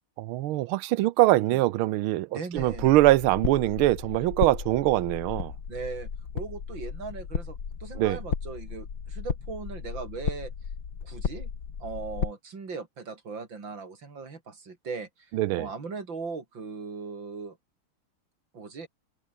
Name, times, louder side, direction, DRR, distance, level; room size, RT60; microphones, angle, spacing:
voice 1, 0.2-2.3 2.5-5.5 8.0-8.2 15.3-15.7, right 16 dB, 80° right, 1.5 m, -23 dB
voice 2, 2.3-2.9 5.7-6.1 6.3-10.5 11.0-11.5 11.8-17.6 18.5-18.9, right 4 dB, 60° right, 4.3 m, -39 dB
sound 1, 2.6-12.3, left 6 dB, 60° left, 2.9 m, -35 dB
omnidirectional pair, 2.3 m